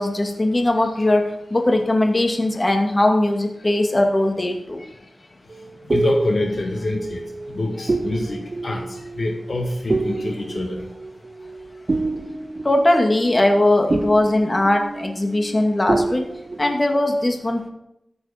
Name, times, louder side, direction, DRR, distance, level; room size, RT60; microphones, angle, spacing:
voice 1, 0.0-4.8 12.6-16.2 16.6-17.7, left 1 dB, 35° left, 3 dB, 2.4 m, -19 dB
sound 1, 5.5-15.6 15.9-16.8, right 2 dB, 50° right, 0.6 m, -28 dB
voice 2, 5.9-10.9, left 2 dB, 65° left, 2 dB, 1.9 m, -26 dB
14.5 x 8.1 x 5.2 m, 0.81 s
wide cardioid pair, 55°, 0 cm